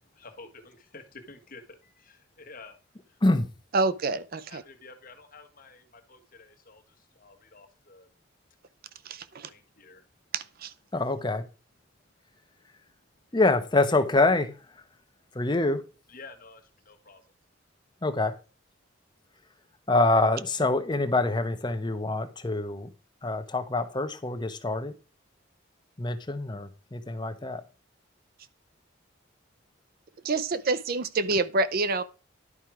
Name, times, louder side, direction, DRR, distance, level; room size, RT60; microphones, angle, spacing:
voice 1, 0.1-2.8 3.1-3.2 4.5-8.1 9.3-10.1 12.0-12.1 16.1-17.2, left 3 dB, 45° left, 1.4 m, -50 dB
voice 2, 3.7-4.6 9.1-9.5 10.3-10.7 30.2-32.0, right 3 dB, 50° right, 0.5 m, -27 dB
voice 3, 10.9-11.4 13.3-14.8 15.3-15.8 18.0-18.4 19.9-22.9 23.2-24.9 26.0-27.6, left 2 dB, 25° left, 0.9 m, -25 dB
11.0 x 4.5 x 4.8 m
head